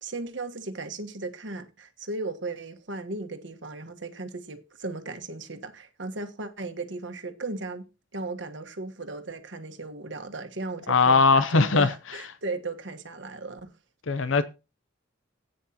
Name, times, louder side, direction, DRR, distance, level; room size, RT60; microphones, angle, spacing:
voice 1, 0.0-13.7, right 3 dB, 65° right, 1.4 m, -36 dB
voice 2, 10.9-11.9 14.1-14.4, left 4 dB, 85° left, 0.7 m, -20 dB
15.5 x 9.2 x 2.9 m
head